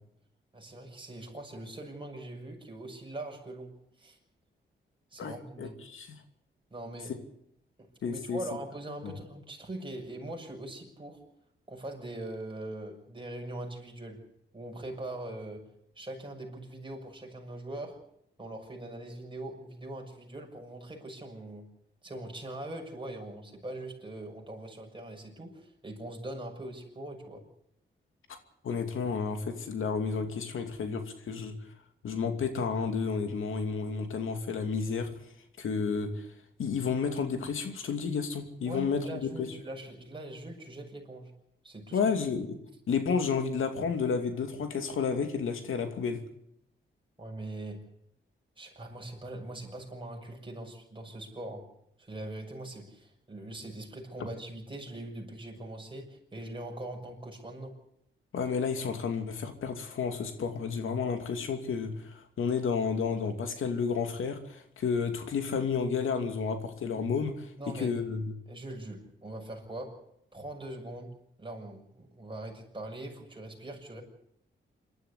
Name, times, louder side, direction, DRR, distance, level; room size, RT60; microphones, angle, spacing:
voice 1, 0.5-4.2 5.1-5.8 6.7-7.2 7.8-11.2 11.7-14.2 14.5-15.7 15.9-18.0 18.4-21.6 22.0-27.4 38.7-41.3 41.6-42.0 47.2-47.9 48.6-51.7 52.0-57.8 67.6-68.0 68.5-70.0 70.3-74.0, right 1 dB, 25° right, 1 dB, 6.5 m, -42 dB
voice 2, 5.2-6.1 8.0-8.4 9.0-9.1 28.6-31.5 32.0-35.1 35.6-36.3 36.6-39.5 41.9-42.6 42.9-46.2 58.3-68.3, left 5 dB, 80° left, 6 dB, 2.6 m, -31 dB
27.0 x 12.5 x 8.3 m, 0.74 s
cardioid pair, 75°, 21 cm